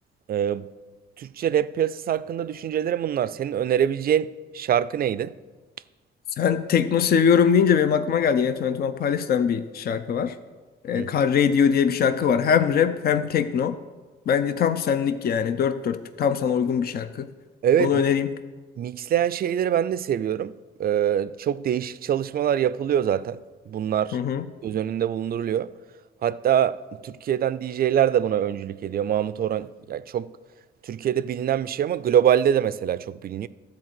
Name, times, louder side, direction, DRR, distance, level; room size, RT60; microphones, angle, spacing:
voice 1, 0.3-0.7 1.2-5.3 10.9-11.1 17.6-18.0 18.8-20.5 20.8-23.4 23.7-24.2 24.6-25.7 26.2-30.3 30.8-33.5, right 10 dB, 50° right, 0.4 m, -24 dB
voice 2, 6.4-10.3 10.8-13.8 14.3-17.3 17.8-18.3 24.1-24.4, left 7 dB, 50° left, 0.5 m, -22 dB
12.5 x 4.2 x 7.7 m
cardioid pair, 90°, 20 cm